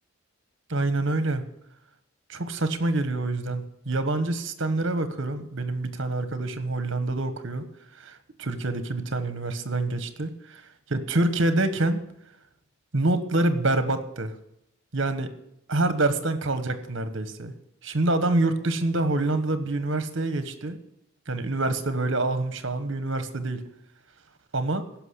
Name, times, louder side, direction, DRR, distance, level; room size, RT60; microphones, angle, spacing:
voice 1, 0.7-1.4 2.3-7.6 8.0-12.0 12.9-14.3 14.9-15.3 15.7-17.5 17.8-20.8 21.3-23.6 24.5-24.8, right 2 dB, 60° right, 10 dB, 1.3 m, -26 dB
15.5 x 6.0 x 8.3 m, 0.79 s
head